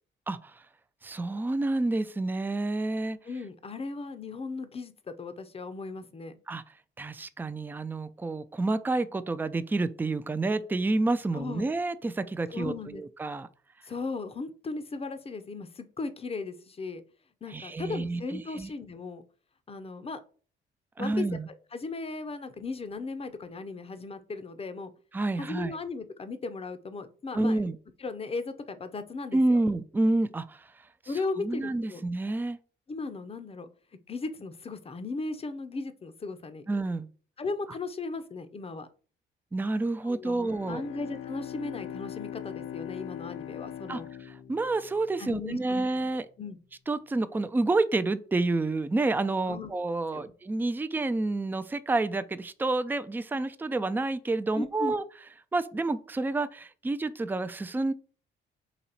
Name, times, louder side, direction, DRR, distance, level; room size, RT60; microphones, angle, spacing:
voice 1, 1.0-3.2 6.5-6.6 7.0-13.5 17.5-18.7 21.0-21.5 25.1-25.7 27.3-27.8 29.3-30.7 31.4-32.6 36.7-37.1 39.5-40.8 43.9-44.0 44.5-46.3 46.9-55.0 55.5-57.9, right 2 dB, 10° right, 0.4 m, -29 dB
voice 2, 3.2-4.9 5.2-6.4 11.3-11.7 12.5-13.0 13.9-17.0 17.4-19.2 19.7-20.2 21.0-21.3 21.7-24.9 25.4-27.6 28.0-29.6 31.1-32.0 32.9-33.7 34.1-36.6 37.4-38.9 40.0-44.1 45.2-45.8 46.4-46.6 49.5-49.7 50.1-50.3 54.5-55.0, left 3 dB, 30° left, 0.7 m, -37 dB
Bowed string instrument, 40.4-45.6, left 10 dB, 90° left, 0.7 m, -41 dB
4.1 x 2.9 x 4.2 m
cardioid pair, 90°, 20 cm